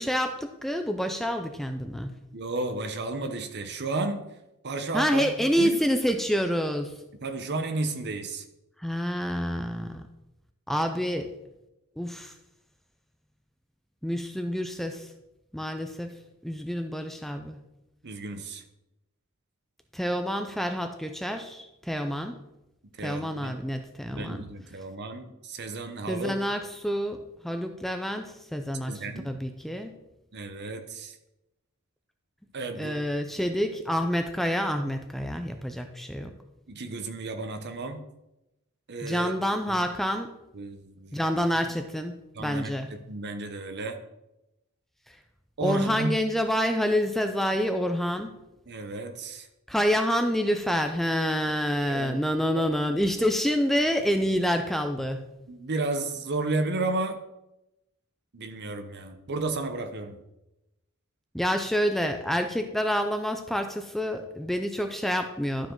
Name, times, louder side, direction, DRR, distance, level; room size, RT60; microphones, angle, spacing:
voice 1, 0.0-2.1 4.9-7.0 8.8-10.0 10.7-11.3 12.0-12.3 14.0-15.1 15.5-16.2 16.4-17.6 19.9-22.4 23.0-24.5 26.1-30.0 32.8-36.3 39.0-40.4 41.1-42.9 45.6-48.4 49.7-55.3 61.3-65.7, equal, ahead, 6 dB, 0.4 m, -28 dB
voice 2, 2.3-4.2 4.6-5.8 7.2-8.4 18.0-18.6 23.0-23.5 24.1-26.4 28.9-29.4 30.3-31.2 32.5-33.0 36.7-38.0 38.9-39.4 39.7-39.8 40.5-41.2 42.3-42.7 43.1-44.0 45.6-46.1 48.7-49.5 51.9-52.2 55.5-57.2 58.3-60.2, right 2 dB, 50° right, 8 dB, 0.9 m, -32 dB
12.0 x 4.9 x 3.8 m, 0.91 s
head